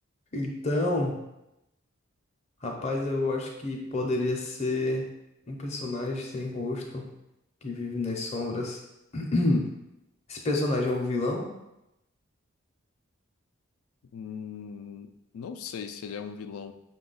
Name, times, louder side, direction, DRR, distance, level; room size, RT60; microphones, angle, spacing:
voice 1, 0.3-1.2 2.6-5.1 5.5-7.0 7.6-8.8 9.1-9.7 10.3-11.5, left 2 dB, 30° left, 0 dB, 0.5 m, -29 dB
voice 2, 14.1-16.7, left 6 dB, 85° left, 8 dB, 0.4 m, -39 dB
5.6 x 2.2 x 3.9 m, 0.90 s
head